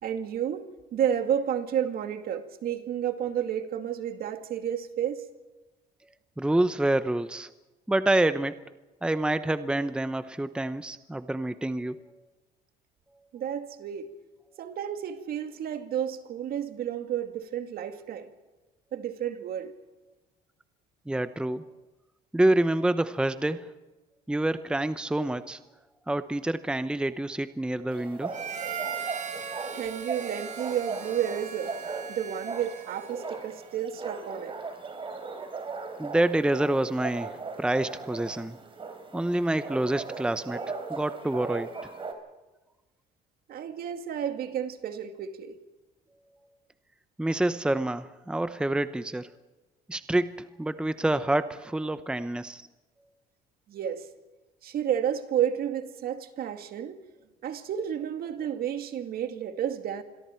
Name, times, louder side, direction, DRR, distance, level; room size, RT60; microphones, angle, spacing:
voice 1, 0.0-5.2 13.3-14.1 14.6-18.3 18.9-19.7 29.7-31.8 32.1-34.5 43.5-45.6 53.7-54.1 54.6-57.0 57.4-60.0, right 9 dB, 65° right, 2.2 m, -31 dB
voice 2, 6.4-7.5 7.9-8.6 9.0-12.0 21.1-21.7 22.3-23.7 24.3-25.6 26.1-28.4 36.0-38.6 39.1-41.7 47.2-49.3 49.9-52.6, right 1 dB, 5° right, 0.8 m, -27 dB
sound 1, 27.9-42.1, right 4 dB, 30° right, 4.0 m, -38 dB
Harmonica, 28.3-33.3, right 7 dB, 45° right, 3.7 m, -38 dB
27.0 x 22.0 x 4.5 m
cardioid pair, 110°, 17 cm